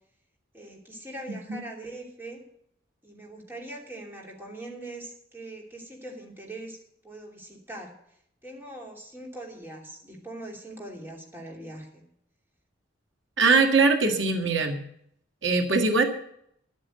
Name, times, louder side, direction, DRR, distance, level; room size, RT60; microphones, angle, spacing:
voice 1, 0.5-2.4 3.0-6.8 7.0-7.9 8.4-12.0, right 1 dB, 10° right, 0 dB, 2.9 m, -41 dB
voice 2, 13.4-14.8 15.4-16.0, right 4 dB, 90° right, 4 dB, 1.9 m, -21 dB
12.5 x 8.5 x 7.7 m, 0.69 s
head